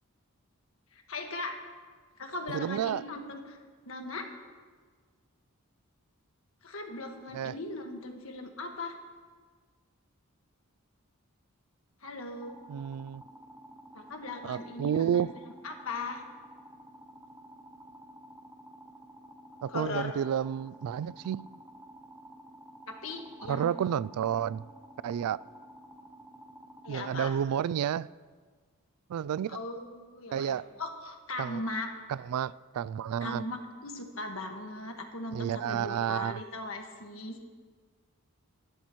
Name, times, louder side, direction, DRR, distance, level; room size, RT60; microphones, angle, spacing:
voice 1, 0.9-1.6 2.2-3.6 3.9-4.3 6.6-8.9 12.0-12.5 13.9-15.3 15.6-16.2 19.7-20.1 22.9-23.7 26.8-27.3 29.5-31.9 33.2-37.4, left 2 dB, 65° left, 1.6 m, -38 dB
voice 2, 2.5-3.0 7.3-7.5 12.7-13.2 14.4-15.3 19.6-21.4 23.5-24.6 25.0-25.4 26.9-28.1 29.1-29.6 30.3-30.7 31.4-31.6 32.1-33.4 35.3-36.4, right 9 dB, 85° right, 0.3 m, -31 dB
sound 1, 12.4-27.1, equal, 10° right, 0.7 m, -51 dB
27.0 x 12.0 x 3.1 m
head